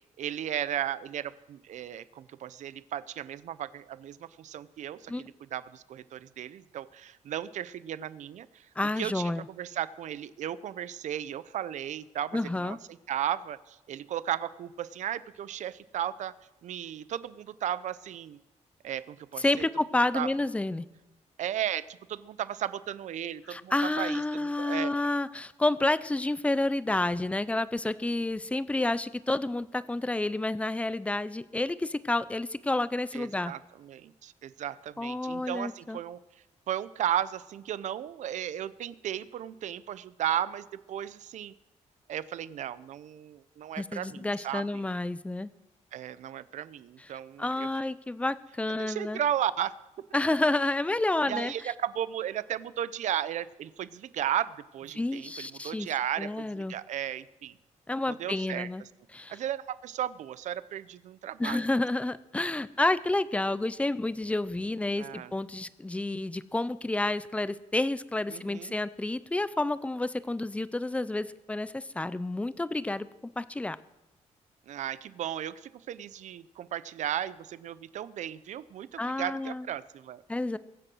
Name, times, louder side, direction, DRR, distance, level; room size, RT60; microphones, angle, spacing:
voice 1, 0.0-8.7 9.0-12.8 13.1-16.3 16.6-18.4 18.8-19.7 20.1-20.3 21.4-24.9 33.1-36.2 36.7-41.5 42.1-44.8 45.9-47.7 48.8-49.7 51.3-57.6 58.1-58.7 59.3-61.6 65.0-65.3 68.3-68.7 74.7-80.2, right 10 dB, 75° right, 16 dB, 0.6 m, -35 dB
voice 2, 8.8-9.5 12.3-12.8 19.4-20.9 23.5-33.5 35.0-36.0 43.8-45.5 47.4-49.2 50.1-51.7 54.9-55.9 56.2-56.7 57.9-58.8 59.1-59.4 61.4-73.1 73.4-73.8 79.0-79.7 80.3-80.6, left 2 dB, 10° left, 15 dB, 0.6 m, -30 dB
22.5 x 7.8 x 6.2 m, 1.0 s
cardioid pair, 120°, 12 cm